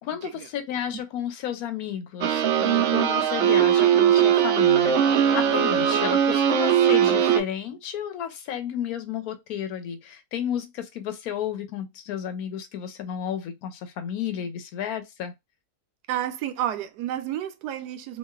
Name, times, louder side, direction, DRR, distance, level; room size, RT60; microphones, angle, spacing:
voice 1, 0.0-15.3, left 9 dB, 70° left, 1.0 m, -32 dB
sound 1, 2.2-7.4, right 9 dB, 70° right, 0.7 m, -20 dB
voice 2, 16.1-18.2, right 11 dB, 90° right, 1.1 m, -30 dB
3.1 x 2.3 x 2.2 m
omnidirectional pair, 1.7 m